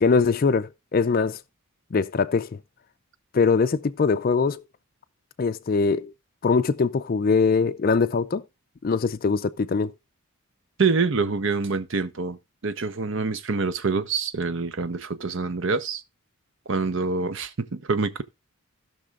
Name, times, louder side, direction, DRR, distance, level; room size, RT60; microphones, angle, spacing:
voice 1, 0.0-1.4 1.9-2.6 3.3-4.6 5.4-6.1 6.4-8.4 8.8-9.9, left 4 dB, 40° left, 0.4 m, -22 dB
voice 2, 10.8-12.4 12.6-16.0 16.7-18.2, right 4 dB, 60° right, 0.7 m, -26 dB
17.0 x 6.0 x 2.4 m
head